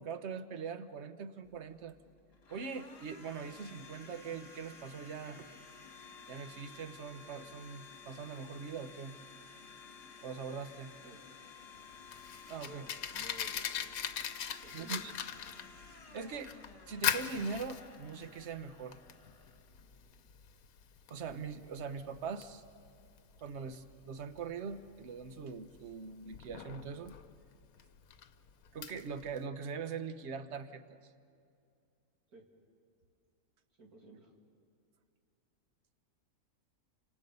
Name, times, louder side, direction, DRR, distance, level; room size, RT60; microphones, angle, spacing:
voice 1, 0.0-2.0 2.5-5.5 6.3-9.2 10.2-10.9 12.5-12.9 14.7-15.1 16.1-16.6 16.9-19.0 21.1-22.6 23.4-27.2 28.7-30.8, right 5 dB, 55° right, 10 dB, 1.1 m, -42 dB
Domestic sounds home sounds, 1.4-20.3, left 4 dB, 45° left, 1.7 m, -54 dB
Fire, 11.8-29.4, left 9 dB, 75° left, 1.2 m, -41 dB
voice 2, 12.6-13.7 14.6-15.1 23.6-23.8 32.3-32.4 33.8-34.3, right 2 dB, 80° right, 0 dB, 3.2 m, -54 dB
29.5 x 26.0 x 5.4 m, 2.4 s
omnidirectional pair, 1.6 m